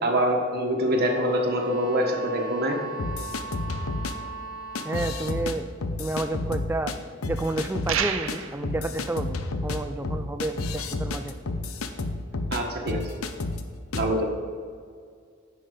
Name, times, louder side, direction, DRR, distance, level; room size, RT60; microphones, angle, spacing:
voice 1, 0.0-2.8 12.5-13.0 13.9-14.3, equal, 50° right, 0 dB, 1.4 m, -25 dB
sound 1, 0.7-5.5, right 4 dB, 40° left, 1.3 m, -39 dB
sound 2, 3.0-4.1 4.7-5.5 5.8-6.9 7.2-8.0 8.3-8.4 8.6-12.6 12.9-13.6 13.9-14.1, left 3 dB, 85° left, 0.7 m, -30 dB
voice 2, 4.8-5.7 6.0-6.9 7.3-9.4 9.6-11.3, right 2 dB, 10° right, 8 dB, 0.3 m, -30 dB
sound 3, 7.9-8.6, right 7 dB, 70° right, 0.6 m, -28 dB
9.8 x 5.7 x 5.5 m, 2.1 s
head